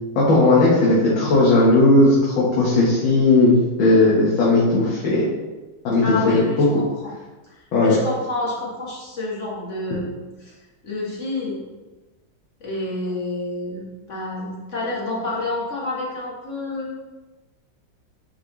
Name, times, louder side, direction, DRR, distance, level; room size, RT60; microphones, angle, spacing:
voice 1, 0.2-5.0 5.8-6.7 7.7-8.0, left 2 dB, 90° left, -7 dB, 1.9 m, -16 dB
voice 2, 6.0-7.2 7.5-10.5 10.8-11.7 12.6-17.0, left 2 dB, 45° left, -4 dB, 1.4 m, -29 dB
9.1 x 3.9 x 3.0 m, 1.2 s
omnidirectional pair, 2.1 m